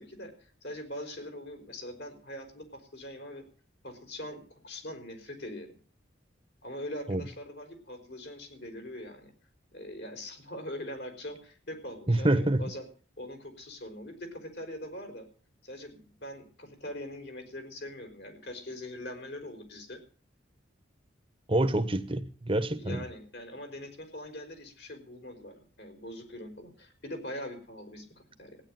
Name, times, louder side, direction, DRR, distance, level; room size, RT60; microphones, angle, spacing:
voice 1, 0.0-3.4 3.8-5.7 6.6-9.3 9.7-12.8 13.2-15.3 15.6-20.0 22.7-28.6, left 1 dB, 60° left, 5.0 m, -42 dB
voice 2, 12.1-12.6 21.5-23.0, right 1 dB, 30° right, 1.3 m, -26 dB
16.0 x 10.0 x 7.8 m
head